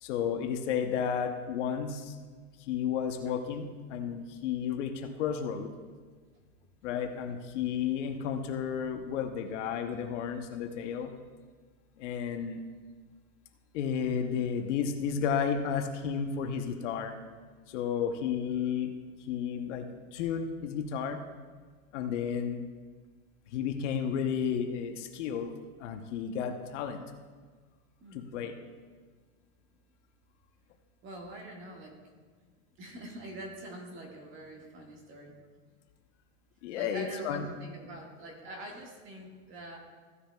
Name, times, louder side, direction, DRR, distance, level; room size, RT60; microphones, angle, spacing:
voice 1, 0.0-2.1 2.7-5.7 6.8-11.1 12.0-12.6 13.7-17.1 17.7-18.9 19.3-19.8 20.1-21.2 21.9-22.6 23.5-25.5 25.8-27.0 28.1-28.5 36.6-37.5, left 7 dB, 55° left, 5 dB, 0.9 m, -32 dB
voice 2, 31.0-32.0 32.8-35.4 36.7-39.8, right 1 dB, 25° right, 0 dB, 1.6 m, -45 dB
15.0 x 9.9 x 2.3 m, 1.5 s
supercardioid pair, 150°, 44 cm